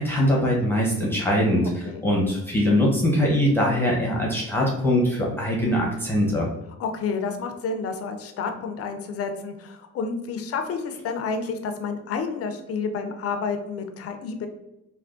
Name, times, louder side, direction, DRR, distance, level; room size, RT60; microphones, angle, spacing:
voice 1, 0.0-6.5, equal, 5° left, -4 dB, 0.7 m, -22 dB
voice 2, 6.8-14.5, left 5 dB, 50° left, 6 dB, 0.5 m, -30 dB
3.4 x 2.2 x 2.5 m, 0.91 s
cardioid pair, 90°, 30 cm